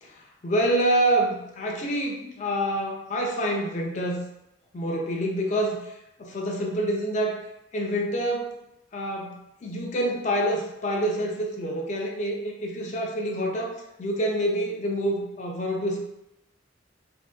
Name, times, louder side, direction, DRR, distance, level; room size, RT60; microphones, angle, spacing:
voice 1, 0.0-4.2 4.7-7.4 7.7-8.5 8.9-16.0, right 1 dB, 40° left, 0 dB, 0.3 m, -27 dB
2.5 x 2.1 x 2.2 m, 0.87 s
head